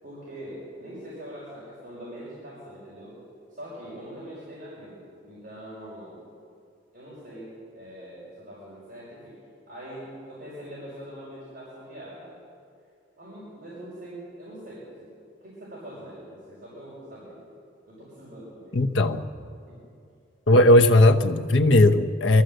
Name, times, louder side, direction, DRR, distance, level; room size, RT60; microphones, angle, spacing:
voice 1, 0.0-3.2 3.5-6.2 6.9-9.3 9.7-12.4 13.2-15.1 15.4-17.4 17.8-18.8 19.7-19.8, equal, 45° right, -8 dB, 5.9 m, -42 dB
voice 2, 18.7-19.3 20.5-22.4, left 1 dB, 85° left, 5 dB, 1.0 m, -17 dB
22.5 x 14.5 x 7.9 m, 2.4 s
head